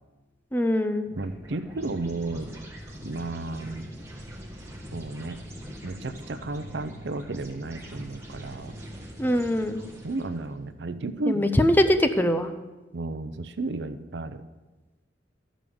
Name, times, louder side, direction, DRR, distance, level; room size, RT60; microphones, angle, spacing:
voice 1, 0.5-1.1 9.2-9.8 11.3-12.5, left 1 dB, 10° left, 8 dB, 0.5 m, -22 dB
sound 1, 1.0-10.5, equal, 15° right, 1.6 m, -42 dB
voice 2, 1.2-2.5 3.0-3.9 4.9-5.4 5.8-8.8 10.0-11.5 12.9-14.4, right 2 dB, 70° right, 11 dB, 0.6 m, -33 dB
12.5 x 5.0 x 6.9 m, 1.2 s
head